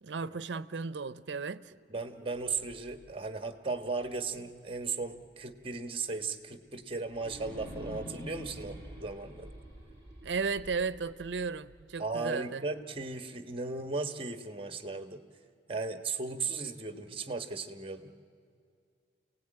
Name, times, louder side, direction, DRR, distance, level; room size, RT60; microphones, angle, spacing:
voice 1, 0.0-1.7 10.2-12.6, right 5 dB, 85° right, 0.6 m, -35 dB
voice 2, 1.9-9.5 12.0-15.2 15.7-18.1, right 4 dB, 30° right, 1.3 m, -36 dB
sound 1, 2.2-5.1 5.6-5.7 7.0-12.1, equal, 15° left, 5.7 m, -48 dB
28.5 x 17.5 x 9.0 m
head